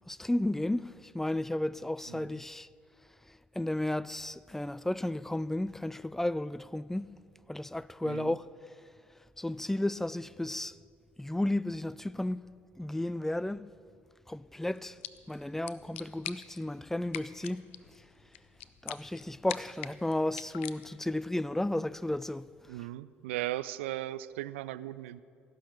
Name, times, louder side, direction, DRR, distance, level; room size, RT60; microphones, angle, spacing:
voice 1, 0.1-2.7 3.3-7.2 7.5-8.5 9.4-10.8 11.2-12.4 12.8-13.7 14.3-15.0 15.3-17.7 18.0-18.1 18.8-22.8, left 1 dB, 5° left, 0.3 m, -33 dB
voice 2, 2.1-2.4 8.0-8.4 22.7-25.2, right 15 dB, 75° right, 0.4 m, -37 dB
sound 1, 14.7-21.2, left 13 dB, 75° left, 0.4 m, -46 dB
17.0 x 6.4 x 9.5 m
figure-of-eight pair, 55°, 7 cm